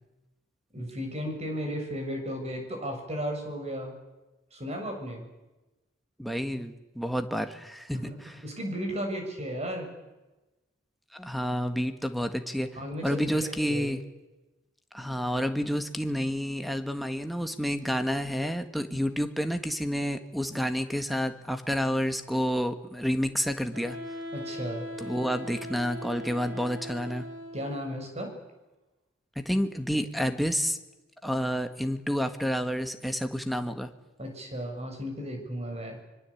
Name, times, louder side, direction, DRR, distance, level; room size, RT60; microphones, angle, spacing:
voice 1, 0.7-3.9 4.5-5.3 7.9-9.9 12.6-13.9 24.3-24.9 27.5-28.3 34.2-36.0, equal, 35° right, 3 dB, 7.1 m, -35 dB
voice 2, 6.2-8.4 11.1-12.7 13.0-14.0 14.9-24.0 25.0-27.3 29.3-30.8 31.2-33.9, equal, ahead, 6 dB, 1.7 m, -29 dB
Wind instrument woodwind instrument, 23.7-27.8, left 1 dB, 90° right, 5.3 m, -40 dB
25.0 x 23.0 x 8.6 m, 1.1 s
head